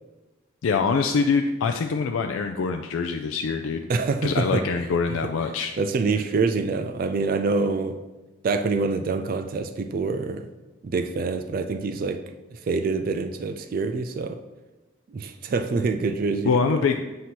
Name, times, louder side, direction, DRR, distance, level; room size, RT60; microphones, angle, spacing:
voice 1, 0.6-3.8 4.2-5.7 16.4-17.0, left 5 dB, 90° left, 5 dB, 0.4 m, -24 dB
voice 2, 3.9-4.6 5.8-8.0 8.4-10.5 10.8-12.2 12.5-14.4 15.1-16.5, right 4 dB, 45° right, 8 dB, 0.3 m, -25 dB
7.6 x 2.8 x 6.0 m, 1.2 s
head